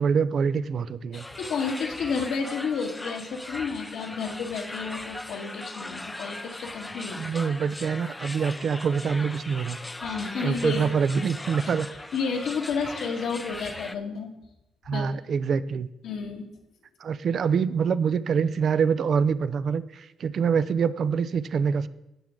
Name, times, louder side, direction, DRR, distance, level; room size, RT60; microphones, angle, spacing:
voice 1, 0.0-1.3 7.2-9.8 10.4-11.9 14.9-15.9 17.0-21.9, right 6 dB, 55° right, 15 dB, 0.5 m, -25 dB
voice 2, 1.1-7.2 10.0-10.9 11.6-11.7 12.1-14.3 14.9-15.1 16.0-16.4, left 5 dB, 75° left, 2 dB, 1.7 m, -31 dB
sound 1, 1.1-13.9, left 2 dB, 15° left, 0.5 m, -39 dB
16.0 x 6.0 x 3.8 m, 0.87 s
cardioid pair, 90°, 0 cm